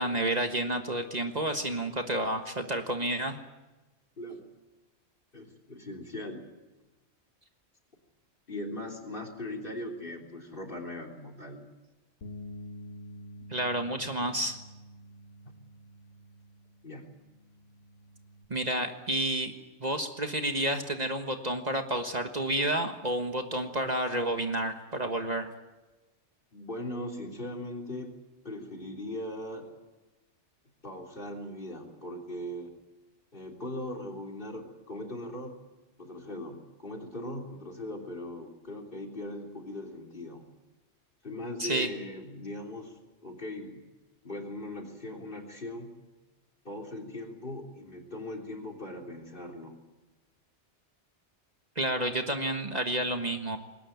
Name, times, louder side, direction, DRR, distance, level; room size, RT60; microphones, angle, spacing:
voice 1, 0.0-3.4 13.5-14.6 18.5-19.5 19.8-25.5 41.6-41.9 51.7-53.6, right 1 dB, 35° right, 5 dB, 1.6 m, -30 dB
voice 2, 4.2-4.5 5.3-6.5 8.5-11.7 16.8-17.1 26.5-29.7 30.8-32.7 33.3-35.7 36.0-40.5 41.2-43.8 44.2-46.0 46.6-49.8, left 1 dB, 50° left, 6 dB, 3.6 m, -39 dB
Bass guitar, 12.2-18.5, equal, 80° left, 2.0 m, -48 dB
21.0 x 19.0 x 9.3 m, 1.1 s
omnidirectional pair, 1.2 m